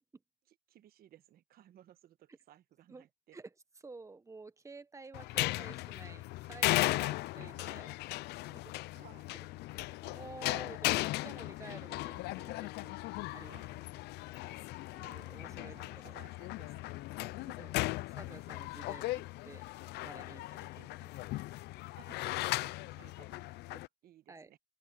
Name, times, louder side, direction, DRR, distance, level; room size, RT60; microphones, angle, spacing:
voice 1, 0.5-3.4 7.3-7.6 8.9-9.3 13.3-13.8 14.9-17.6 22.0-22.2 22.6-24.6, right 12 dB, 65° right, 1.2 m, -60 dB
voice 2, 3.8-8.0 8.5-8.6 9.7-13.0 13.3-13.8 15.0-16.2 17.6-19.6 20.0-21.4 24.3-24.5, right 3 dB, 20° right, 1.2 m, -52 dB
sound 1, 5.1-23.9, left 19 dB, 80° left, 0.5 m, -37 dB
open air
cardioid pair, 110°, 17 cm